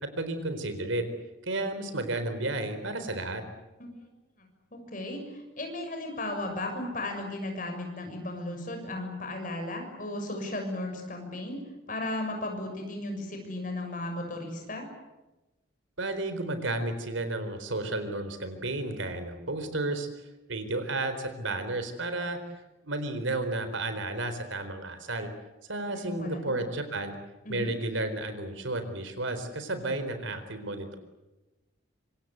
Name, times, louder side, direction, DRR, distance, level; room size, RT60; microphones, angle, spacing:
voice 1, 0.0-1.1 1.4-3.4 16.0-20.1 20.5-22.4 22.8-25.3 25.6-27.2 27.5-31.0, right 2 dB, 80° right, 9 dB, 4.2 m, -32 dB
voice 2, 4.4-11.6 11.9-14.8 25.9-26.6 27.4-27.7, left 1 dB, 40° left, 4 dB, 6.7 m, -35 dB
26.0 x 26.0 x 8.2 m, 1.1 s
head